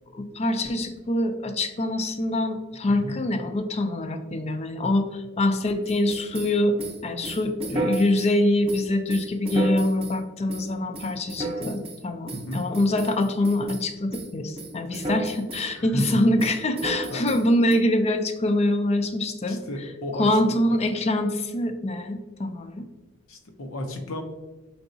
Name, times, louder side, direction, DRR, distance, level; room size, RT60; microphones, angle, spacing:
voice 1, 0.1-6.7 7.0-19.6 20.2-22.8, left 1 dB, 30° left, 7 dB, 0.4 m, -24 dB
voice 2, 2.9-3.2 12.3-12.6 14.9-15.0 15.7-16.2 17.1-17.2 19.5-20.6 23.3-24.2, equal, 70° left, 5 dB, 0.7 m, -32 dB
sound 1, 5.9-8.3 8.7-10.2 10.5-10.7 10.9-12.0 12.3-13.9 14.1-14.3 14.6-15.7 16.0-17.7, right 1 dB, 30° right, 0.8 m, -33 dB
4.6 x 3.9 x 2.6 m, 1.2 s
head